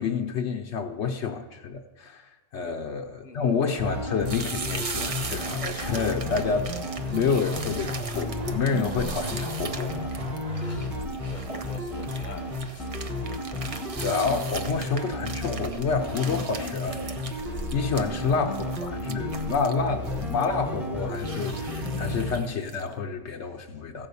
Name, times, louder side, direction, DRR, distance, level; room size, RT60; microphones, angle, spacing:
voice 1, 0.0-6.7 7.1-10.1 10.4-10.7 14.0-17.2 17.7-24.1, left 5 dB, 70° left, 3 dB, 1.0 m, -29 dB
sound 1, 3.7-19.0, right 2 dB, 80° right, 2.1 m, -46 dB
sound 2, 3.8-22.4, left 1 dB, ahead, 1.0 m, -33 dB
sound 3, 4.2-22.9, right 3 dB, 35° right, 0.6 m, -39 dB
voice 2, 10.6-10.9 11.2-13.7 14.6-14.7 17.9-18.5, left 4 dB, 40° left, 6 dB, 1.0 m, -45 dB
15.0 x 5.5 x 6.8 m, 1.3 s
omnidirectional pair, 1.3 m